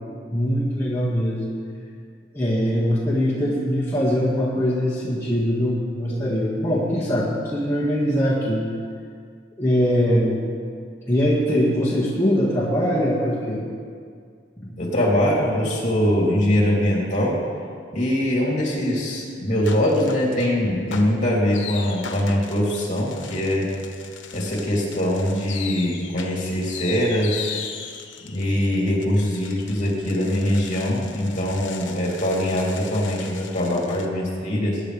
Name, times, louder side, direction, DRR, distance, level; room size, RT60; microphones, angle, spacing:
voice 1, 0.3-1.4 2.3-8.7 9.6-10.4 11.1-13.6 14.6-14.7, equal, 15° left, -7 dB, 1.8 m, -22 dB
voice 2, 14.8-17.4 17.9-23.7 24.3-27.5 28.2-34.8, left 1 dB, 40° left, -3 dB, 3.3 m, -22 dB
sound 1, 19.7-20.5 20.9-34.1, left 7 dB, 80° left, 1.1 m, -38 dB
22.0 x 10.0 x 3.4 m, 2.2 s
head